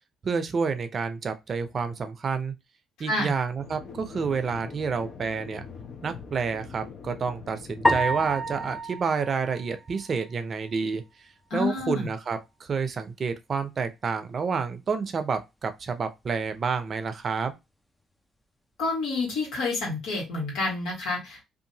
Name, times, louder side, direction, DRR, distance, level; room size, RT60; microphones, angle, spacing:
voice 1, 0.2-2.5 3.0-5.7 6.0-11.0 11.5-17.5, right 5 dB, 50° right, 0.6 m, -29 dB
sound 1, 3.6-8.8, left 6 dB, 55° left, 0.8 m, -43 dB
sound 2, 7.8-10.3, right 1 dB, 10° left, 0.5 m, -28 dB
voice 2, 11.5-12.1 18.8-21.4, left 3 dB, 80° left, 1.6 m, -28 dB
2.7 x 2.5 x 2.7 m
supercardioid pair, 60°, 0 cm